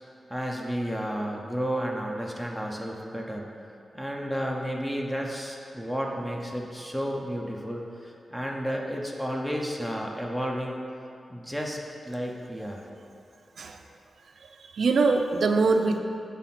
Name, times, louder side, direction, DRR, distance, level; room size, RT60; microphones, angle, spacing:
voice 1, 0.3-3.5 3.9-10.8 11.3-12.8, equal, 5° left, 0 dB, 0.6 m, -32 dB
voice 2, 14.4-16.0, right 4 dB, 70° right, 5 dB, 0.4 m, -23 dB
5.8 x 4.1 x 5.7 m, 2.6 s
wide cardioid pair, 130°, 0 cm